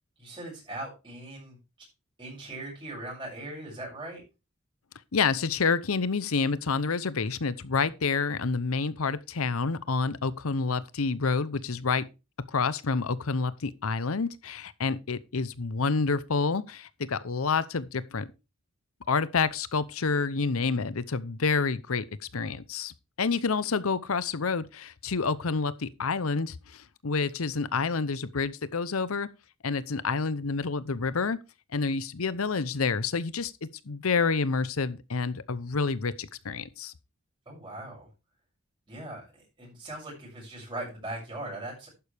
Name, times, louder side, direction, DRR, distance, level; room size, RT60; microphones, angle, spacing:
voice 1, 0.2-1.6 2.2-4.2 37.5-38.1 38.9-41.9, right 1 dB, 25° right, 6.9 m, -40 dB
voice 2, 5.1-12.1 12.5-18.3 19.1-22.1 22.3-29.3 29.6-31.4 31.7-36.9, left 4 dB, 75° left, 0.8 m, -28 dB
11.5 x 9.5 x 3.4 m
head